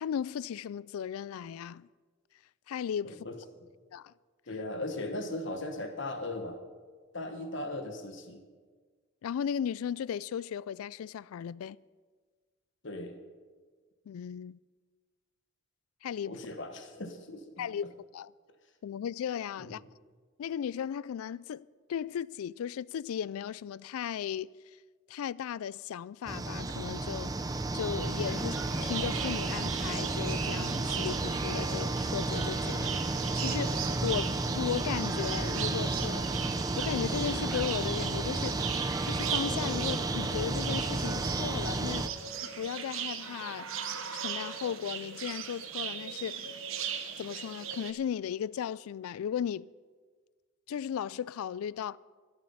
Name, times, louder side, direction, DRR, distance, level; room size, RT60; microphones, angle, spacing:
voice 1, 0.0-1.9 2.7-3.3 3.9-4.1 9.2-11.8 14.1-14.6 16.0-16.4 17.6-18.3 18.8-19.8 20.4-24.5 25.1-27.3 27.7-36.3 36.8-38.6 39.1-42.1 42.6-43.7 44.1-46.5 47.2-49.7 50.7-52.0, left 8 dB, 85° left, 0.3 m, -36 dB
voice 2, 3.0-3.4 4.5-6.6 7.1-8.4 12.8-13.1 16.3-17.7 19.6-19.8, left 2 dB, 55° left, 1.3 m, -38 dB
sound 1, 26.3-42.1, right 2 dB, 15° right, 0.5 m, -32 dB
sound 2, 28.0-47.9, right 8 dB, 70° right, 1.1 m, -38 dB
13.0 x 12.0 x 5.6 m
head